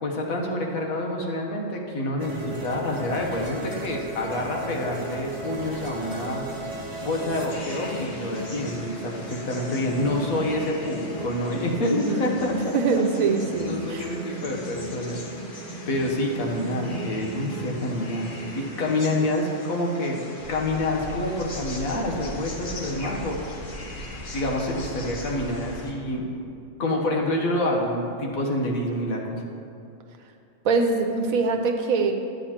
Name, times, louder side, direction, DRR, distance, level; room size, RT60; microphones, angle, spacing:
voice 1, 0.0-6.4 7.0-12.5 12.9-15.2 15.9-18.2 18.5-20.2 20.5-23.4 24.3-26.2 26.8-29.4, left 1 dB, 90° left, 0 dB, 1.5 m, -27 dB
sound 1, 2.2-19.3, right 1 dB, 20° right, 0.8 m, -36 dB
sound 2, 7.5-25.9, left 2 dB, 40° left, 1.0 m, -43 dB
voice 2, 11.8-14.1 30.6-32.1, right 4 dB, 85° right, 5 dB, 1.2 m, -24 dB
sound 3, 20.4-25.7, equal, 70° left, 1.4 m, -39 dB
10.5 x 8.9 x 2.9 m, 2.5 s
omnidirectional pair, 1.4 m